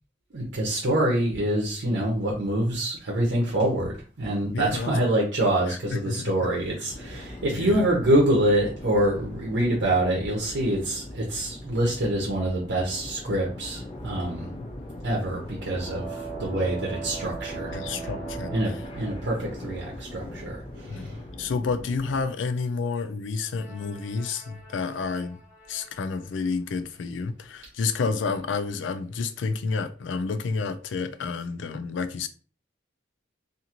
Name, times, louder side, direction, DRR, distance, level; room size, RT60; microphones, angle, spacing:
voice 1, 0.3-14.5 15.0-18.1 18.5-21.2, right 1 dB, 75° right, 0.7 m, -26 dB
voice 2, 4.5-5.0 5.7-6.5 7.5-7.8 14.6-14.7 17.7-18.5 20.8-25.4 25.7-32.3, left 4 dB, 85° left, 0.4 m, -30 dB
sound 1, 6.8-22.2, left 1 dB, 30° left, 0.5 m, -40 dB
sound 2, 15.5-20.0 23.4-26.3, right 6 dB, 10° right, 0.8 m, -41 dB
2.6 x 2.5 x 2.9 m
head